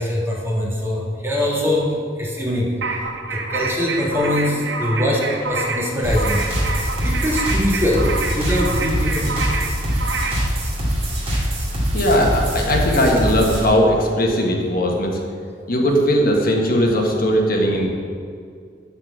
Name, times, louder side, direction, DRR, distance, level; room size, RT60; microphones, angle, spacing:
voice 1, 0.0-3.0 3.3-6.5 7.0-8.1 8.3-9.3, left 1 dB, 15° right, -3 dB, 1.8 m, -22 dB
sound 1, 2.8-10.5, right 3 dB, 90° right, 1.0 m, -27 dB
sound 2, 6.0-13.6, equal, 35° right, 2.2 m, -23 dB
voice 2, 11.9-15.1 15.7-17.9, equal, 55° left, 0 dB, 1.5 m, -18 dB
12.5 x 4.4 x 7.4 m, 2.2 s
head